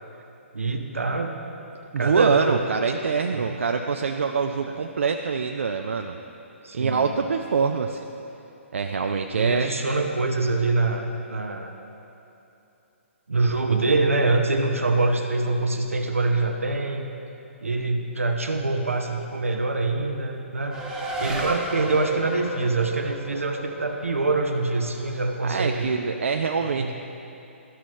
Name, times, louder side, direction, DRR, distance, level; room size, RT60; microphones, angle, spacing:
voice 1, 0.5-1.3 2.0-2.9 3.3-3.6 4.7-4.8 6.6-7.1 9.3-11.7 13.3-17.1 17.6-20.8 21.2-25.9 26.8-26.9, right 3 dB, 85° right, 4 dB, 0.8 m, -25 dB
voice 2, 1.9-6.2 6.7-8.0 8.7-9.7 21.3-21.4 25.4-26.9, right 5 dB, 70° right, 5 dB, 0.4 m, -25 dB
Race car auto racing, 20.7-25.6, right 1 dB, 10° right, 1.0 m, -34 dB
12.5 x 6.2 x 3.1 m, 2.8 s
figure-of-eight pair, 130°, 7 cm